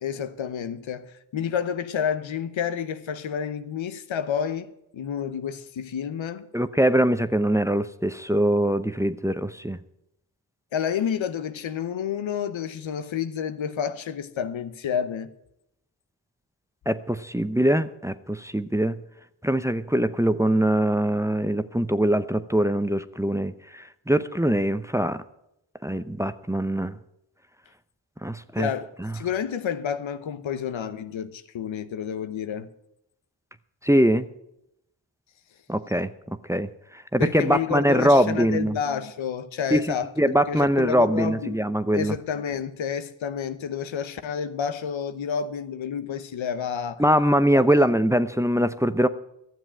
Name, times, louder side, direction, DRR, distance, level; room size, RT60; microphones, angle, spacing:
voice 1, 0.0-6.5 10.7-15.3 28.6-32.7 37.2-41.6 41.9-47.0, left 8 dB, 80° left, 0.9 m, -30 dB
voice 2, 6.5-9.8 16.9-18.9 19.4-25.2 25.8-27.0 28.2-28.7 29.0-29.1 33.8-34.3 35.7-38.8 39.7-42.1 47.0-49.1, right 1 dB, 5° right, 0.7 m, -23 dB
12.5 x 7.5 x 8.7 m
cardioid pair, 40°, 46 cm